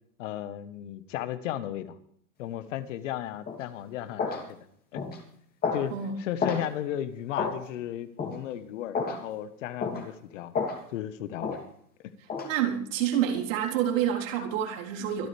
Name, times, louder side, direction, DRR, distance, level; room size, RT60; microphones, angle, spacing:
voice 1, 0.2-2.0 2.4-4.6 4.9-5.0 5.7-10.5 10.9-11.6 12.0-12.1, left 11 dB, 55° left, 13 dB, 1.4 m, -35 dB
sound 1, 3.5-3.6 4.2-4.4 5.0-5.2 5.6-5.9 6.4-6.6 7.4-7.6 8.2-8.4 8.9-9.2 9.8-10.0 10.5-10.8 11.4-11.6 12.3-12.5, left 5 dB, 20° left, 3.0 m, -29 dB
voice 2, 12.4-15.3, right 10 dB, 60° right, -1 dB, 4.2 m, -28 dB
24.0 x 11.0 x 3.5 m, 0.65 s
hypercardioid pair, 135°, 45 cm